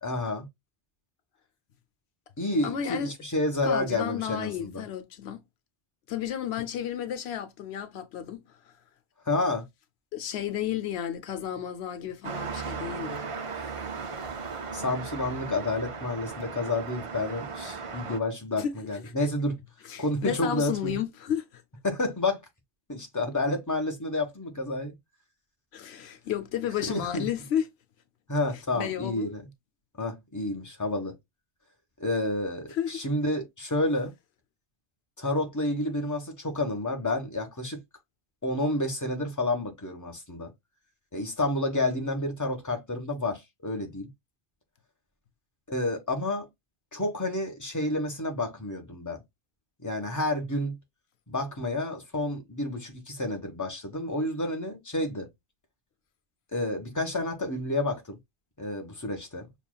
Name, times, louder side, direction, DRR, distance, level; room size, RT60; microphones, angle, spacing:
voice 1, 0.0-0.5 2.4-4.8 9.3-9.7 14.7-19.6 20.0-21.0 21.8-22.4 22.9-24.9 26.8-27.3 28.3-29.4 30.0-31.1 32.0-34.1 35.2-37.8 38.4-40.5 41.1-44.1 45.7-46.5 46.9-49.2 49.8-50.8 51.3-55.3 56.5-58.2 58.6-59.5, left 2 dB, 15° left, 1.1 m, -30 dB
voice 2, 2.6-3.1 3.6-5.4 6.1-8.4 10.1-13.2 18.6-19.1 19.9-21.6 25.7-27.6 28.7-29.3 32.7-32.9, left 9 dB, 80° left, 0.9 m, -32 dB
sound 1, 12.2-18.2, right 5 dB, 40° right, 0.5 m, -37 dB
6.9 x 2.4 x 2.2 m
omnidirectional pair, 1.1 m